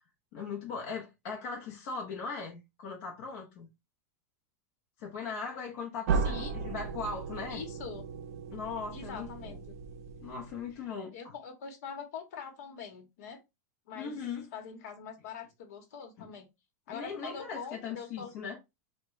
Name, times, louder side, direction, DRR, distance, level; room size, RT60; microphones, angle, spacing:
voice 1, 0.3-3.7 5.0-7.6 8.5-9.6 10.2-11.3 14.0-14.5 16.2-16.3 16.9-18.6, left 5 dB, 40° left, 0.6 m, -39 dB
voice 2, 6.1-6.5 7.5-8.1 8.9-9.7 11.1-13.4 13.9-14.2 14.5-16.5 16.9-18.3, left 6 dB, 70° left, 1.0 m, -43 dB
sound 1, 6.1-10.8, right 5 dB, 65° right, 0.4 m, -35 dB
3.5 x 2.1 x 3.0 m
supercardioid pair, 175°, 9 cm